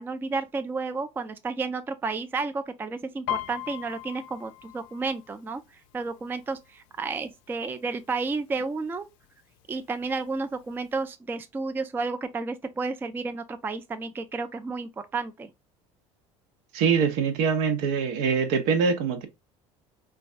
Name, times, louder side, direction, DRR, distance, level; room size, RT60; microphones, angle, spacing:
voice 1, 0.0-9.1 9.7-15.5, right 4 dB, 10° right, 0.3 m, -32 dB
Piano, 3.3-6.9 7.3-7.7 8.0-8.7 9.2-9.3 9.6-10.6 11.0-11.1, left 12 dB, 70° left, 0.5 m, -38 dB
voice 2, 16.7-19.3, right 6 dB, 65° right, 0.7 m, -24 dB
3.2 x 2.3 x 2.3 m
hypercardioid pair, 75°, 18 cm